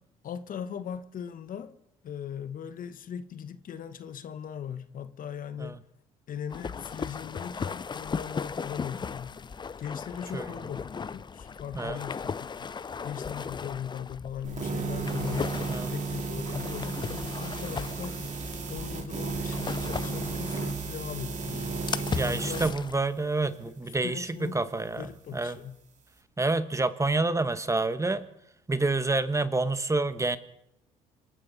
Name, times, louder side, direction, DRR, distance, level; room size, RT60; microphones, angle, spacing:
voice 1, 0.2-1.8 2.0-5.8 6.3-9.4 9.8-12.7 13.0-15.6 15.9-18.2 18.7-21.9 22.2-22.7 23.8-24.6 24.9-25.8, left 8 dB, 50° left, 1.1 m, -39 dB
sound 1, 6.5-23.0, left 6 dB, 25° left, 0.5 m, -37 dB
sound 2, 14.4-22.7, right 4 dB, 45° right, 2.9 m, -33 dB
voice 2, 22.2-25.6 26.4-28.3 28.7-30.4, right 3 dB, 15° right, 1.2 m, -28 dB
27.0 x 12.5 x 4.1 m
hypercardioid pair, 60°, 18 cm